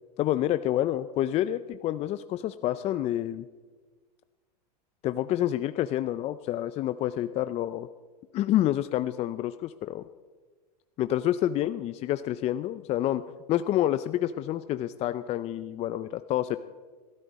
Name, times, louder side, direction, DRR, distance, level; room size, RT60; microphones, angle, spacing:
voice 1, 0.2-3.5 5.0-7.9 8.3-10.0 11.0-13.2 13.5-16.6, left 13 dB, 30° left, 12 dB, 0.5 m, -28 dB
28.0 x 9.8 x 4.1 m, 1.4 s
hypercardioid pair, 120°, 20 cm